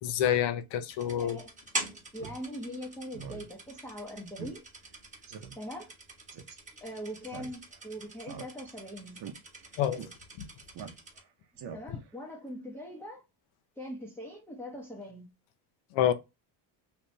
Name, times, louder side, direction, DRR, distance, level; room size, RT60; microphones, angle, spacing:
voice 1, 0.0-1.4 9.8-10.0 15.9-16.1, left 10 dB, 70° left, 0.7 m, -27 dB
sound 1, 0.9-11.2, right 2 dB, 15° right, 1.1 m, -44 dB
voice 2, 1.2-1.5 2.1-4.6 5.6-5.9 6.8-9.2 11.7-13.2 13.8-15.3, equal, 5° left, 0.8 m, -41 dB
Speech synthesizer, 2.2-2.4 2.7-2.8 3.1-3.5 3.8-3.9 4.4-4.6 4.9-5.0 5.3-5.5 6.3-6.6 7.3-7.8 8.2-8.8 9.1-9.3 10.0-10.1 10.7-11.2 11.6-12.1, right 7 dB, 55° right, 0.8 m, -43 dB
2.9 x 2.5 x 3.1 m
supercardioid pair, 95°, 47 cm